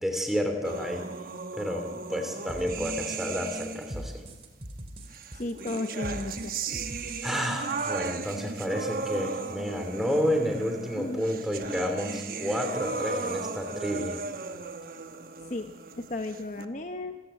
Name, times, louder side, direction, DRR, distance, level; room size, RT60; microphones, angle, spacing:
voice 1, 0.0-1.0 1.6-4.2 7.2-14.2, equal, ahead, 5 dB, 2.8 m, -30 dB
sound 1, 0.6-4.1 5.1-16.7, right 4 dB, 50° right, 1.1 m, -36 dB
sound 2, 2.5-8.1, right 1 dB, 30° right, 2.5 m, -42 dB
voice 2, 5.3-6.5 10.9-11.2 15.4-17.2, left 2 dB, 40° left, 7 dB, 0.9 m, -34 dB
27.0 x 14.5 x 9.0 m, 1.3 s
head